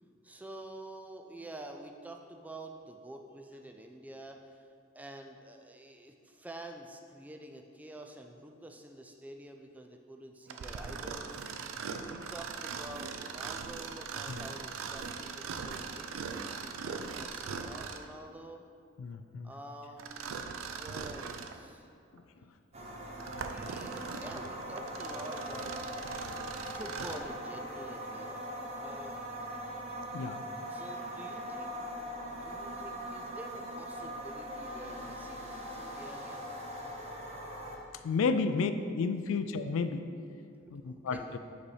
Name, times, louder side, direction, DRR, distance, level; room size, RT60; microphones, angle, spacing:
voice 1, 0.2-4.7 4.9-11.3 12.0-16.3 16.6-18.6 19.4-21.9 23.3-25.8 26.2-28.4 28.8-29.2 30.7-31.7 32.3-36.5 40.6-41.4, right 1 dB, 10° right, 3 dB, 0.3 m, -48 dB
Mechanisms, 10.5-18.2 20.0-21.6 22.2-22.3 23.0-27.3, right 5 dB, 80° right, 0.4 m, -40 dB
voice 2, 19.0-19.5 30.1-30.4 38.0-40.1 40.7-41.4, left 4 dB, 85° left, 9 dB, 0.3 m, -32 dB
sound 1, 22.7-37.8, equal, 35° right, 0.7 m, -41 dB
5.1 x 4.2 x 4.8 m, 2.3 s
head